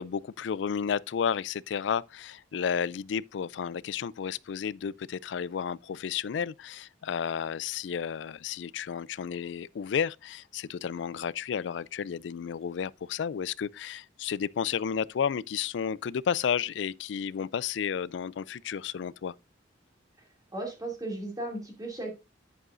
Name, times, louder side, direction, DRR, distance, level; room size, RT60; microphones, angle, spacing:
voice 1, 0.0-19.3, left 7 dB, 70° left, 0.3 m, -32 dB
voice 2, 20.5-22.1, right 2 dB, 20° right, 2.6 m, -35 dB
10.0 x 7.8 x 2.6 m
head